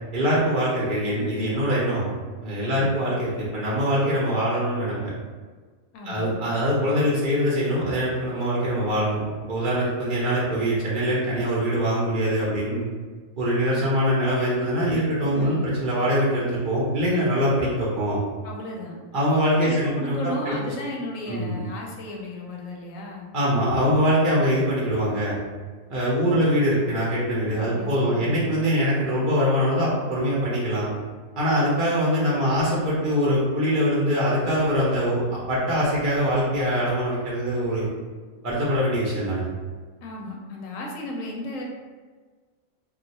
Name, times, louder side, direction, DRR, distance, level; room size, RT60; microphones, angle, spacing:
voice 1, 0.1-2.1 2.4-5.1 6.0-12.8 13.4-18.2 19.1-20.3 21.2-21.6 23.3-25.4 25.9-30.9 31.4-37.9 38.4-39.4, equal, 50° right, -6 dB, 0.7 m, -23 dB
voice 2, 2.6-3.0 5.9-6.3 15.3-15.6 18.4-19.0 19.6-23.3 27.6-28.3 40.0-41.6, left 1 dB, 75° left, -1 dB, 0.9 m, -35 dB
2.4 x 2.3 x 4.0 m, 1.5 s
omnidirectional pair, 1.5 m